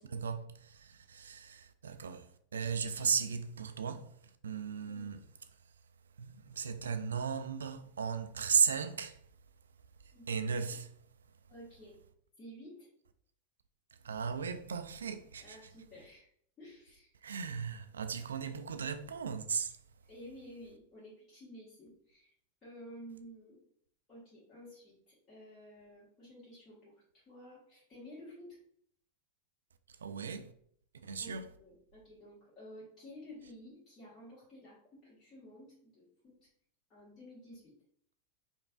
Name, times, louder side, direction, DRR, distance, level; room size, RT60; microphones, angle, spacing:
voice 1, 0.0-4.1 4.4-5.2 6.2-9.2 10.3-10.9 14.0-15.6 17.2-19.8 30.0-30.5 31.0-31.5, right 6 dB, 70° right, 0.3 m, -36 dB
voice 2, 11.5-11.9 12.4-12.9 15.4-16.3 16.6-17.1 18.5-18.6 20.1-22.3 22.6-23.6 24.1-28.6 31.2-36.5 36.9-37.7, equal, 25° left, 1.5 m, -52 dB
5.1 x 2.3 x 2.3 m
figure-of-eight pair, 90°, 0 cm